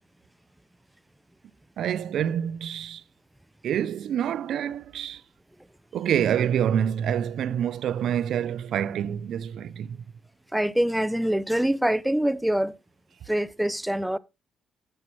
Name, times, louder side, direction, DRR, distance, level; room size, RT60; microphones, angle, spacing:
voice 1, 1.8-3.0 3.6-5.2 5.9-10.0, right 9 dB, 70° right, 0.4 m, -27 dB
voice 2, 10.5-12.8 13.3-14.2, right 1 dB, 5° right, 0.4 m, -24 dB
9.7 x 7.5 x 3.1 m
cardioid pair, 90°, 0 cm